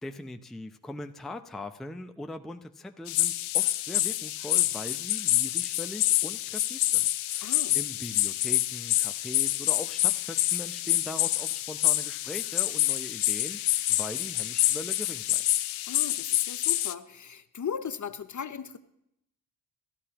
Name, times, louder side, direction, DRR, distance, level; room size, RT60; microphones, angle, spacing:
voice 1, 0.0-15.4, left 1 dB, ahead, 7 dB, 0.6 m, -41 dB
sound 1, 3.1-16.9, left 15 dB, 70° left, 0.6 m, -27 dB
voice 2, 7.4-7.8 15.9-18.8, left 7 dB, 35° left, 11 dB, 0.8 m, -37 dB
14.5 x 12.5 x 2.9 m, 0.78 s
supercardioid pair, 50°, 50 cm